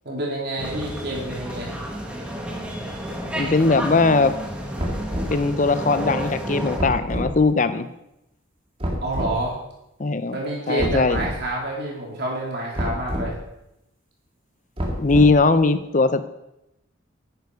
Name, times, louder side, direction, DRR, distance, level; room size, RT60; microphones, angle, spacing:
voice 1, 0.0-1.7 9.0-9.6 10.3-13.3, right 1 dB, 50° right, -3 dB, 3.3 m, -28 dB
sound 1, 0.6-6.8, equal, 5° right, 1.3 m, -31 dB
voice 2, 3.4-4.3 5.3-7.9 10.0-10.4 10.7-11.2 15.0-16.3, left 3 dB, 35° left, 12 dB, 0.6 m, -19 dB
sound 2, 4.8-5.4 6.8-7.3 8.8-9.4 10.8-11.4 12.7-13.3 14.8-15.5, equal, 25° right, 2.1 m, -27 dB
10.0 x 9.3 x 4.8 m, 0.87 s
head